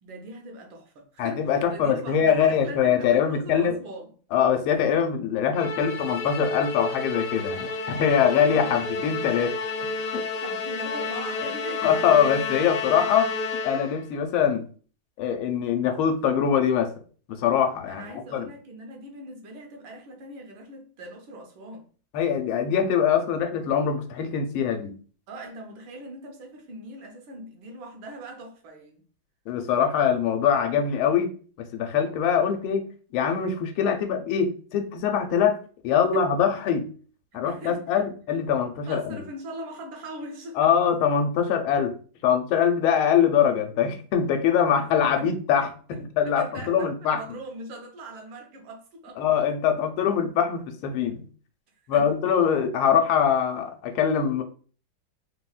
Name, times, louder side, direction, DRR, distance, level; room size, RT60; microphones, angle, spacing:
voice 1, 0.0-4.1 8.2-9.1 10.4-12.0 17.8-21.9 25.3-29.0 36.0-36.3 37.3-38.0 38.9-40.7 44.7-44.8 45.2-45.3 45.9-46.0 46.2-49.3 51.9-52.1, right 1 dB, 75° right, 1.4 m, -41 dB
voice 2, 1.2-3.8 4.3-9.6 10.1-10.2 11.8-14.6 15.2-16.9 17.3-18.5 22.1-24.9 29.5-31.3 31.6-32.9 33.1-35.6 35.8-36.9 37.3-39.0 40.6-41.9 42.2-47.2 49.2-51.2 51.9-54.4, left 8 dB, 90° left, 1.4 m, -23 dB
Musical instrument, 5.5-14.1, left 3 dB, 75° left, 1.0 m, -31 dB
3.8 x 2.1 x 2.3 m
omnidirectional pair, 2.2 m